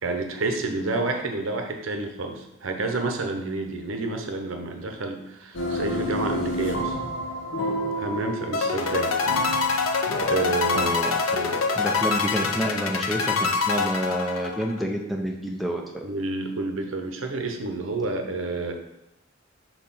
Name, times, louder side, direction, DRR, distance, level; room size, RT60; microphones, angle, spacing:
voice 1, 0.0-7.0 8.0-9.1 10.2-11.6 16.0-18.7, right 2 dB, 80° right, 4 dB, 0.9 m, -29 dB
sound 1, 5.5-11.0, equal, 65° left, 1.0 m, -30 dB
sound 2, 8.5-14.8, left 4 dB, 90° left, 0.6 m, -25 dB
voice 2, 10.7-11.4 11.8-16.1, equal, ahead, 0 dB, 0.6 m, -29 dB
4.8 x 4.2 x 5.6 m, 0.91 s
head